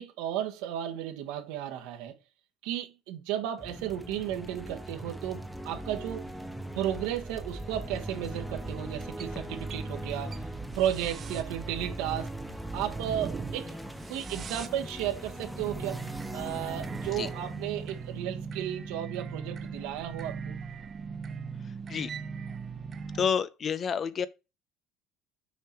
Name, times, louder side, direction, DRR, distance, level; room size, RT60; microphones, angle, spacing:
voice 1, 0.0-2.2 2.6-6.3 6.7-10.5 10.7-12.3 12.7-13.8 14.1-16.0 16.3-20.6, right 11 dB, 85° right, 1.5 m, -34 dB
sound 1, 3.6-19.0, equal, ahead, 0.8 m, -40 dB
sound 2, 7.4-23.3, right 5 dB, 35° right, 0.8 m, -40 dB
voice 2, 23.2-24.3, left 6 dB, 35° left, 0.6 m, -29 dB
6.5 x 4.9 x 4.5 m
cardioid pair, 130°, 0 cm